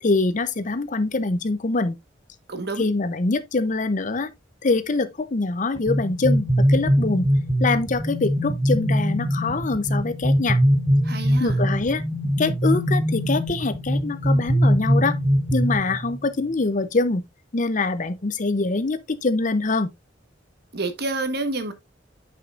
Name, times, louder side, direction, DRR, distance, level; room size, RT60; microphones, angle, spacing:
voice 1, 0.0-1.9 2.8-4.3 4.6-7.3 7.6-10.6 11.4-12.0 12.4-15.2 15.5-17.2 17.5-19.9, left 3 dB, 45° left, 0.7 m, -24 dB
voice 2, 2.5-2.9 11.0-11.6 20.7-21.7, right 2 dB, 60° right, 1.3 m, -28 dB
sound 1, 5.7-16.2, equal, 30° right, 5.7 m, -22 dB
8.9 x 5.9 x 2.4 m
head